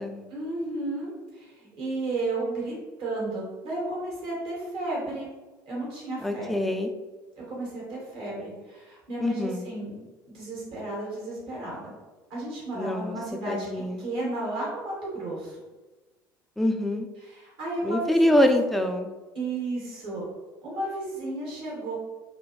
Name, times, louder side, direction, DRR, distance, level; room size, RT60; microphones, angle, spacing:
voice 1, 0.3-5.3 5.7-6.5 7.4-10.0 10.3-11.9 12.3-13.7 14.0-15.6 17.2-18.4 19.3-20.2 20.6-21.9, right 2 dB, 50° right, -5 dB, 1.4 m, -33 dB
voice 2, 6.2-6.9 9.2-9.7 12.7-13.2 13.5-14.0 16.6-17.1 17.8-19.1, left 1 dB, ahead, 5 dB, 0.3 m, -25 dB
2.7 x 2.6 x 2.9 m, 1.2 s
figure-of-eight pair, 65°, 11 cm